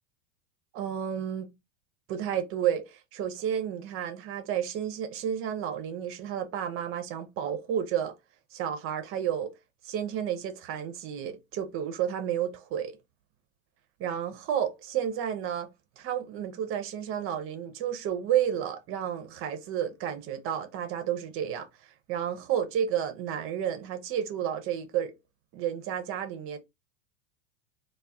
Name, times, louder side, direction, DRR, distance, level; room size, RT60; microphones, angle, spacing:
voice 1, 0.7-1.5 2.1-8.1 8.5-9.5 9.8-13.0 14.0-15.7 16.0-21.7 22.1-25.1 25.5-26.6, right 9 dB, 35° right, 0.4 m, -31 dB
2.2 x 2.1 x 3.5 m
hypercardioid pair, 100°, 43 cm